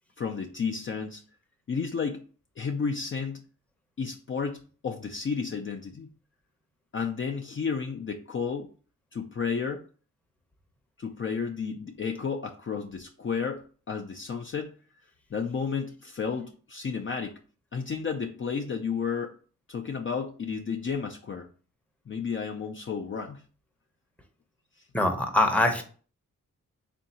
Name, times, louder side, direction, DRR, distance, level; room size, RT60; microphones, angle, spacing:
voice 1, 0.2-1.2 1.7-2.2 2.6-3.4 4.0-6.1 6.9-8.7 9.1-9.8 11.0-14.7 15.3-17.4 17.7-19.4 19.7-21.5 22.1-23.4, left 5 dB, 40° left, 2 dB, 0.4 m, -32 dB
voice 2, 24.9-25.8, left 1 dB, 5° left, 4 dB, 0.7 m, -23 dB
3.6 x 2.6 x 4.1 m, 0.40 s
wide cardioid pair, 90°, 32 cm